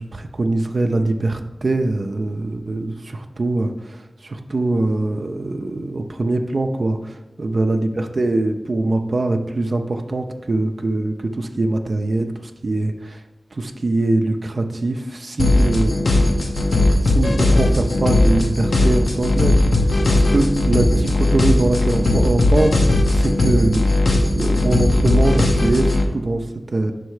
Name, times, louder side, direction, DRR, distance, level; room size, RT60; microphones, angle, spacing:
voice 1, 0.0-13.2 13.5-16.3 16.6-24.0 24.3-26.9, right 2 dB, 65° right, 5 dB, 0.5 m, -23 dB
sound 1, 15.4-26.1, left 2 dB, 75° left, 0.7 m, -17 dB
5.5 x 4.2 x 4.7 m, 0.99 s
cardioid pair, 45°, 0 cm